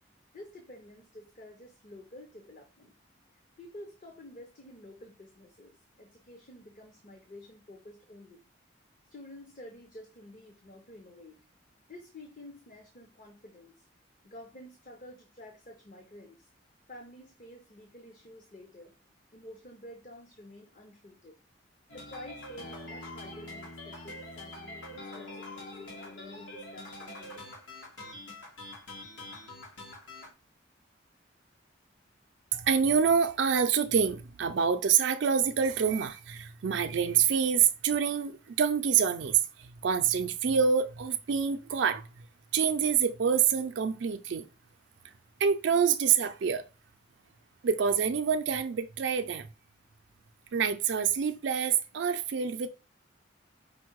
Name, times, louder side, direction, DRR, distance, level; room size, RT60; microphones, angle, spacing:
voice 1, 0.3-2.9 3.3-8.4 9.1-11.4 11.9-13.9 14.2-16.5 16.9-19.0 19.3-21.3 21.9-27.5, left 1 dB, 40° left, 0.7 m, -50 dB
sound 1, 21.9-30.3, left 1 dB, 75° left, 1.4 m, -44 dB
voice 2, 32.5-42.0 42.5-44.5 45.4-46.7 47.6-49.5 50.5-52.7, right 7 dB, 65° right, 0.4 m, -26 dB
5.2 x 2.1 x 4.5 m
head